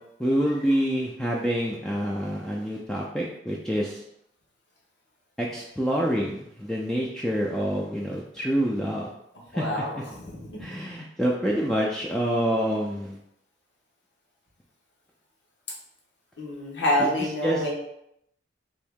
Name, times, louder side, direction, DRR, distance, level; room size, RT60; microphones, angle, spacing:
voice 1, 0.2-4.0 5.4-9.1 9.5-10.0 10.6-13.2 17.0-17.7, equal, 5° left, -4 dB, 0.3 m, -27 dB
voice 2, 9.5-10.6 16.4-17.7, left 1 dB, 85° left, -3 dB, 1.1 m, -27 dB
3.0 x 2.7 x 3.5 m, 0.76 s
head